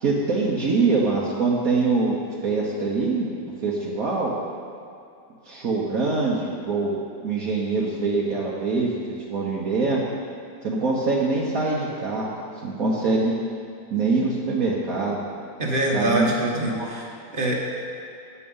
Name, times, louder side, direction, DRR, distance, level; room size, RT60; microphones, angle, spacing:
voice 1, 0.0-3.3 3.6-4.3 5.4-7.0 7.2-9.0 9.3-10.0 10.6-12.3 12.6-13.3 13.9-15.2 15.9-16.3 16.6-16.9, right 3 dB, 60° right, -4 dB, 1.4 m, -24 dB
voice 2, 15.6-17.6, right 1 dB, 35° right, -2 dB, 1.3 m, -25 dB
9.4 x 8.7 x 5.5 m, 2.4 s
omnidirectional pair, 1.8 m